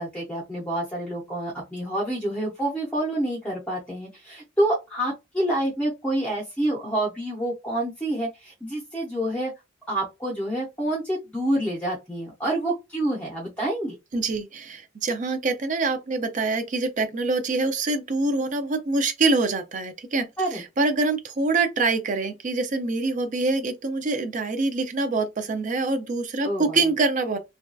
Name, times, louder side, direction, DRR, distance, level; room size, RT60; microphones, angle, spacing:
voice 1, 0.0-9.5 9.9-13.9 20.4-20.6 26.4-26.8, right 1 dB, 10° left, 0.6 m, -27 dB
voice 2, 14.1-27.4, right 3 dB, 40° right, 0.4 m, -25 dB
2.6 x 2.2 x 2.2 m
head